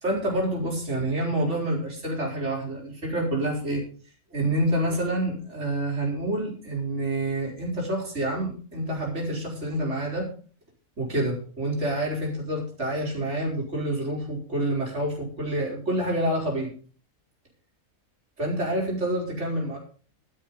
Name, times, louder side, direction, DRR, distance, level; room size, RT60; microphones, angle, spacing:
voice 1, 0.0-3.8 4.3-10.3 11.0-16.7 18.4-19.8, right 1 dB, 55° right, -1 dB, 4.4 m, -27 dB
12.0 x 10.5 x 5.2 m, 0.41 s
omnidirectional pair, 1.4 m